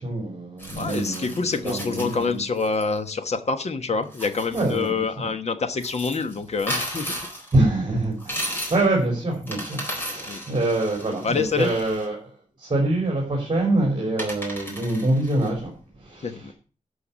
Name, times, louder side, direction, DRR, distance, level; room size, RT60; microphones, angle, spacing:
voice 1, 0.0-1.3 1.6-2.4 4.5-5.3 7.5-12.2 12.6-15.7 16.0-16.5, right 2 dB, 35° right, -2 dB, 3.9 m, -25 dB
sound 1, 0.6-2.8 4.0-4.9 5.8-7.6 8.2-8.9 9.3-12.1 13.5-13.6 14.2-15.5, equal, 15° left, 4.1 m, -35 dB
voice 2, 0.8-7.1 10.3-10.4 11.2-11.7 16.2-16.5, left 4 dB, 55° left, 9 dB, 1.2 m, -26 dB
12.0 x 5.8 x 7.0 m, 0.37 s
wide cardioid pair, 155°, 14 cm